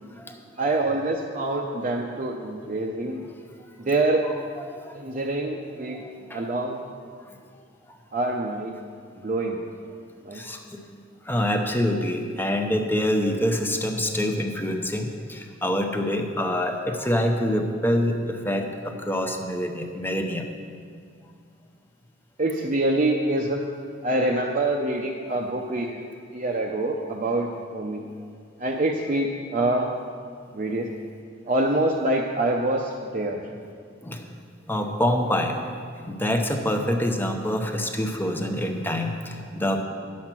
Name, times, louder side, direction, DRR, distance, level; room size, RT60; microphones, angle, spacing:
voice 1, 0.6-3.2 3.8-4.2 4.9-6.0 6.3-6.8 8.1-8.7 9.2-9.6 10.2-10.5 22.4-23.6 24.0-26.0 26.3-28.0 28.6-29.9 30.5-30.9 31.5-33.4, right 2 dB, 40° right, -1 dB, 0.6 m, -25 dB
voice 2, 6.0-6.4 10.4-10.6 11.3-20.4 25.8-25.9 34.0-34.2 34.7-35.6 36.1-39.8, left 1 dB, 10° left, 4 dB, 0.7 m, -26 dB
10.0 x 7.4 x 6.0 m, 2.1 s
head